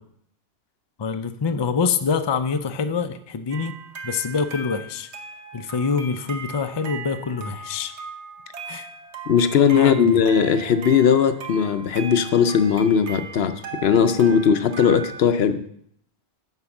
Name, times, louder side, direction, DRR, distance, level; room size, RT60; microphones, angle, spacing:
voice 1, 1.0-3.7 4.0-5.1 5.5-7.9 8.7-8.9 9.7-10.2, left 5 dB, 35° left, 9 dB, 0.4 m, -25 dB
sound 1, 3.5-15.2, right 5 dB, 90° right, 1.4 m, -38 dB
voice 2, 9.3-13.5 13.8-15.6, left 7 dB, 70° left, 11 dB, 0.9 m, -18 dB
9.9 x 4.8 x 7.0 m, 0.68 s
omnidirectional pair, 1.1 m